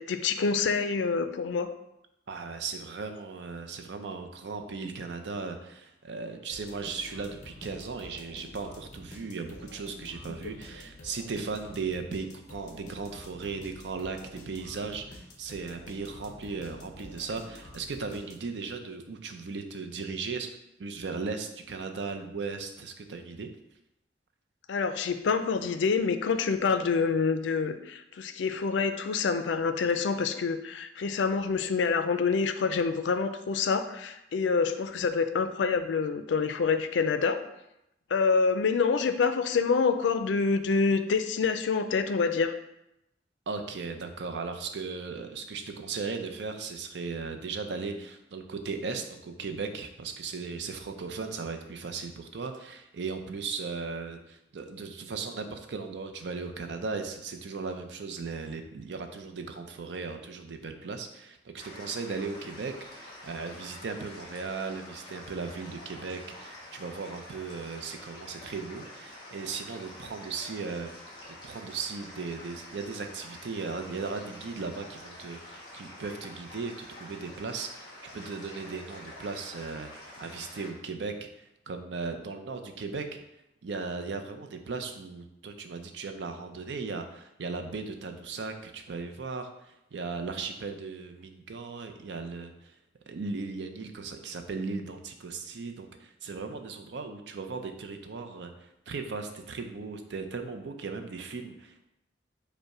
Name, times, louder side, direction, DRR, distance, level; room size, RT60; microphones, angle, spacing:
voice 1, 0.0-1.7 24.7-37.4 38.1-42.5, left 5 dB, 90° left, 9 dB, 0.4 m, -27 dB
voice 2, 2.3-20.5 20.8-23.5 43.5-70.9 71.3-83.2 83.6-92.8 93.1-101.9, right 4 dB, 75° right, 6 dB, 0.5 m, -37 dB
sound 1, 6.5-18.7, left 1 dB, 45° left, 0.7 m, -49 dB
sound 2, 61.6-80.7, left 1 dB, 25° left, 1.3 m, -47 dB
5.2 x 2.2 x 4.8 m, 0.86 s
head